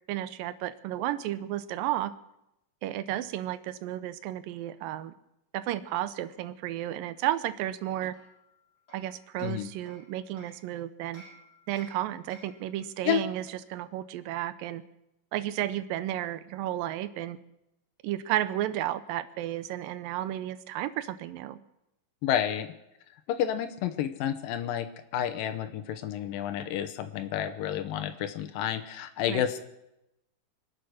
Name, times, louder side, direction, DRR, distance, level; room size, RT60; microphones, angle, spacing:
voice 1, 0.1-2.1 2.8-5.2 5.5-8.1 8.9-11.2 11.7-13.4 13.7-14.8 15.3-17.4 18.0-21.6 29.3-29.5, right 13 dB, 90° right, 14 dB, 2.5 m, -32 dB
Hammer, 8.1-10.7 11.1-12.7, equal, 25° left, 6.9 m, -55 dB
voice 2, 9.4-9.7 13.1-13.2 22.2-22.7 23.3-24.9 25.1-29.6, left 10 dB, 90° left, 8 dB, 2.6 m, -30 dB
24.5 x 8.3 x 6.4 m, 0.87 s
omnidirectional pair, 3.9 m